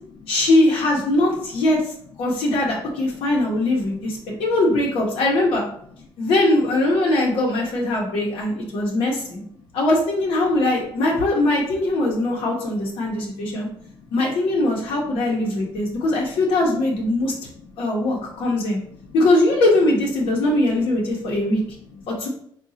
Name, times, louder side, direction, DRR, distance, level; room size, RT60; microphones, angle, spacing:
voice 1, 0.3-1.8 2.2-5.6 6.2-9.4 9.7-13.7 14.1-17.3 17.8-18.8 19.1-21.6 22.1-22.3, left 2 dB, 90° left, -3 dB, 0.9 m, -21 dB
voice 2, 3.8-4.5 5.2-5.3 8.6-8.9 9.6-9.7 12.0-12.4 12.8-14.1 14.5-14.6 15.4-16.0 16.3-16.4 17.1-17.8 18.2-18.6 18.9-19.2 20.3-20.4 21.1-22.1, left 4 dB, 65° left, 0 dB, 0.8 m, -47 dB
3.7 x 2.4 x 2.7 m, 0.65 s
cardioid pair, 130°, 9 cm